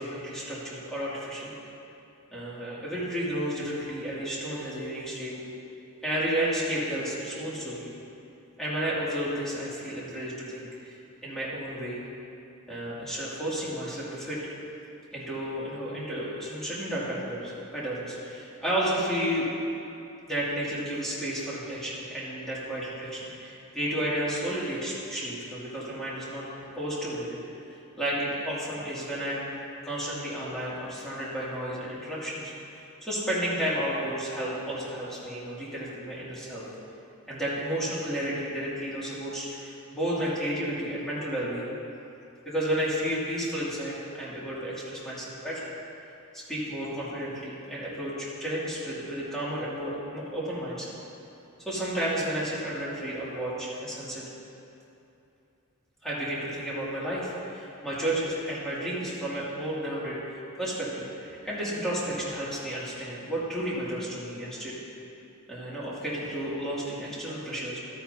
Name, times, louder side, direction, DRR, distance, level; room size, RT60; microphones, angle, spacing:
voice 1, 0.0-1.5 2.3-5.3 6.0-7.9 8.6-11.0 11.2-12.0 12.7-14.4 15.1-19.5 20.3-26.4 26.7-27.4 28.0-32.5 33.0-36.6 37.3-41.7 42.5-45.7 46.3-50.9 51.6-54.2 56.0-64.7 65.5-67.8, right 1 dB, ahead, -9 dB, 2.3 m, -32 dB
13.0 x 8.8 x 2.7 m, 2.8 s
head